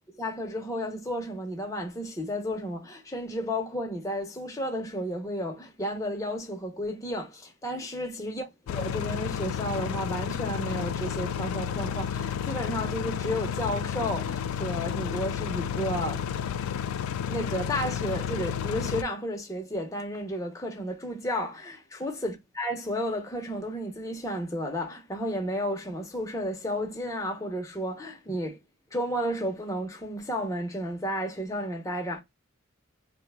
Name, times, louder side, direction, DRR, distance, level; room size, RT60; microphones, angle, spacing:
voice 1, 0.2-16.3 17.3-28.6 28.9-32.2, equal, 15° left, 0.6 m, -32 dB
sound 1, 8.7-19.0, left 8 dB, 90° left, 0.3 m, -31 dB
2.8 x 2.1 x 3.3 m
head